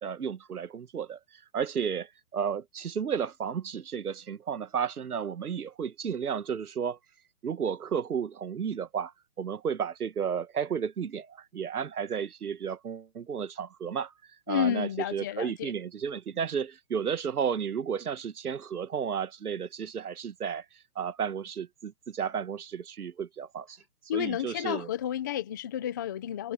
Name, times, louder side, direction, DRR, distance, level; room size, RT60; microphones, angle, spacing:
voice 1, 0.0-7.0 7.4-9.1 9.4-14.1 14.5-20.7 21.0-23.8 24.1-24.9, right 7 dB, 70° right, 1.9 m, -33 dB
voice 2, 14.5-15.7 24.1-26.5, left 11 dB, 15° left, 0.6 m, -31 dB
hypercardioid pair, 150°, 47 cm